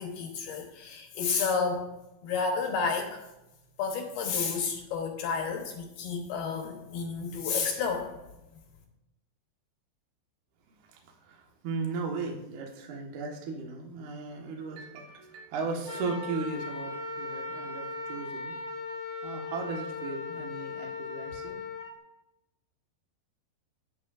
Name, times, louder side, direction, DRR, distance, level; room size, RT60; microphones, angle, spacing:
voice 1, 0.0-1.8 2.2-3.2 3.8-8.1, left 5 dB, 70° left, 2 dB, 2.6 m, -31 dB
voice 2, 10.9-18.6 19.2-21.6, right 4 dB, 65° right, 0 dB, 1.9 m, -36 dB
Wind instrument woodwind instrument, 15.8-21.9, left 3 dB, 25° left, 1.4 m, -38 dB
18.0 x 8.1 x 2.5 m, 0.94 s
omnidirectional pair, 5.7 m